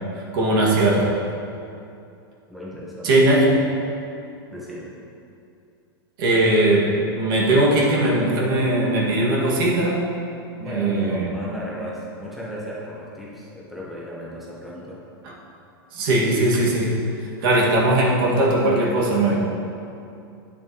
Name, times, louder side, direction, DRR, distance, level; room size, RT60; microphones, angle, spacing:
voice 1, 0.3-1.1 3.0-3.5 6.2-6.9 7.2-10.1 10.7-11.3 15.9-16.9 17.4-19.3, right 1 dB, 60° right, -4 dB, 1.9 m, -19 dB
voice 2, 2.5-3.2 3.5-3.6 4.5-4.9 10.6-15.0 18.6-19.3, equal, ahead, -6 dB, 1.2 m, -35 dB
9.8 x 7.1 x 3.0 m, 2.6 s
hypercardioid pair, 135°, 13 cm